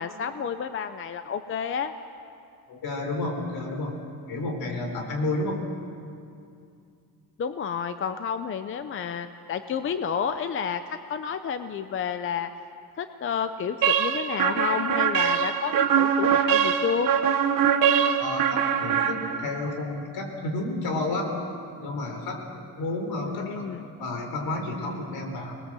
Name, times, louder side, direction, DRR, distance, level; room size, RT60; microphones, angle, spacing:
voice 1, 0.0-1.9 7.4-12.5 13.0-17.1 23.2-23.8, left 7 dB, 35° left, 10 dB, 0.6 m, -30 dB
voice 2, 2.7-4.0 4.3-5.6 18.2-21.3 21.8-23.6 24.0-25.6, left 2 dB, 70° left, 3 dB, 4.2 m, -31 dB
sound 1, 13.8-19.7, right 8 dB, 60° right, 1.3 m, -23 dB
25.5 x 20.0 x 7.5 m, 2.5 s
cardioid pair, 175°, 38 cm